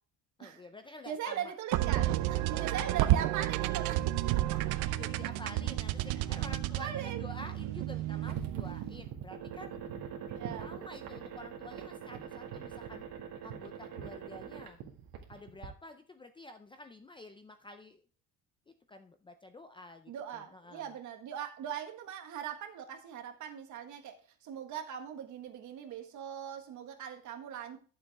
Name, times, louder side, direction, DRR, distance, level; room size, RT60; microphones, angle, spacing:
voice 1, 0.4-1.5 2.5-2.7 5.0-9.8 10.5-13.1 13.4-14.8 15.3-18.0 18.7-20.9, left 2 dB, 15° left, 7 dB, 0.5 m, -49 dB
voice 2, 1.0-4.0 4.5-4.6 6.1-6.2 6.8-7.2 10.3-10.7 20.1-27.8, right 9 dB, 50° right, 5 dB, 1.5 m, -40 dB
sound 1, 1.7-9.0, right 15 dB, 85° right, 0.7 m, -31 dB
sound 2, 8.2-15.7, right 8 dB, 70° right, 2.0 m, -43 dB
11.5 x 7.2 x 3.5 m, 0.39 s
cardioid pair, 160°, 37 cm